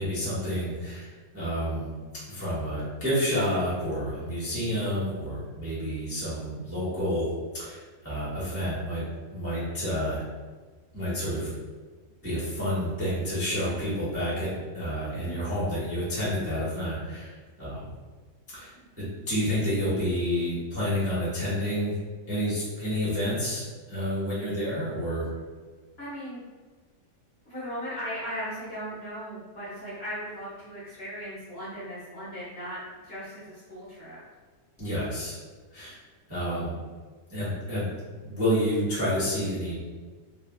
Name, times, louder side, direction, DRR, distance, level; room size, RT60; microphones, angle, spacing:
voice 1, 0.0-1.9 2.3-7.2 7.6-10.2 10.9-11.5 12.2-17.9 18.5-18.7 19.0-21.9 22.3-25.2 34.8-35.4 35.7-36.0 36.3-36.7 37.3-37.9 38.2-39.7, equal, 15° right, -10 dB, 0.5 m, -29 dB
voice 2, 15.2-15.5 26.0-26.4 27.5-34.2, equal, 50° left, -10 dB, 0.8 m, -37 dB
3.1 x 2.2 x 2.2 m, 1.4 s
omnidirectional pair, 1.8 m